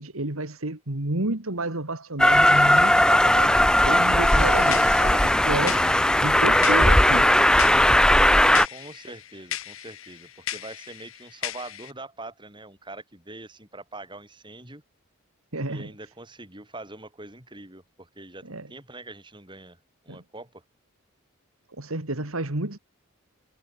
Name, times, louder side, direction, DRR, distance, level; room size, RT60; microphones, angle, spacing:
voice 1, 0.0-3.6 3.8-5.8 6.2-7.3 15.5-15.9 18.5-18.7 20.1-20.2 21.8-22.8, right 2 dB, 80° right, 2.7 m, -30 dB
Train, 2.2-8.7, left 1 dB, 5° left, 0.5 m, -18 dB
sound 1, 4.2-11.9, left 11 dB, 75° left, 2.0 m, -37 dB
voice 2, 8.7-14.8 15.7-19.8 20.0-20.6, right 2 dB, 20° right, 7.7 m, -43 dB
head